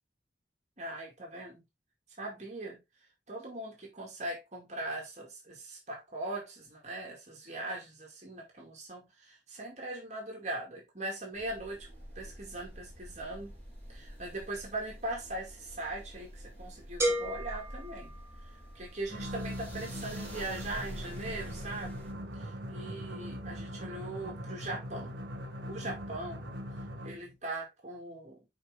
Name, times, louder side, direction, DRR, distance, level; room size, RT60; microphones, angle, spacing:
voice 1, 0.8-1.6 2.2-2.8 3.3-11.9 12.2-13.5 13.9-18.1 18.7-22.0 22.3-25.1 25.7-26.4 27.0-28.4, right 2 dB, 40° right, 2.4 m, -40 dB
sound 1, 11.3-22.1, equal, 10° left, 3.8 m, -48 dB
sound 2, 17.0-18.9, right 1 dB, 15° right, 1.7 m, -34 dB
sound 3, 19.1-27.3, equal, 80° right, 1.3 m, -41 dB
6.0 x 5.1 x 3.4 m
head